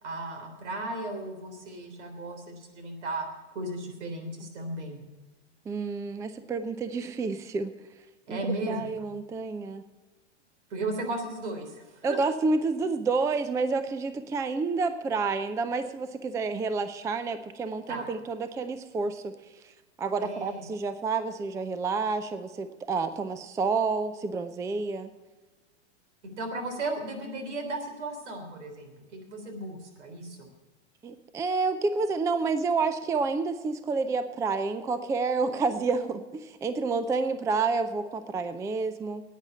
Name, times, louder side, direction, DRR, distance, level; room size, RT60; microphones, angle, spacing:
voice 1, 0.0-3.3 3.5-5.0 8.3-8.9 10.7-12.4 17.9-18.1 20.2-20.6 26.4-30.5, right 2 dB, 75° right, 5 dB, 3.4 m, -35 dB
voice 2, 5.7-7.7 8.3-9.8 12.0-19.3 19.6-19.7 20.0-25.1 31.0-39.2, right 4 dB, 10° right, 11 dB, 0.4 m, -29 dB
10.5 x 9.2 x 7.3 m, 1.2 s
hypercardioid pair, 120°, 35 cm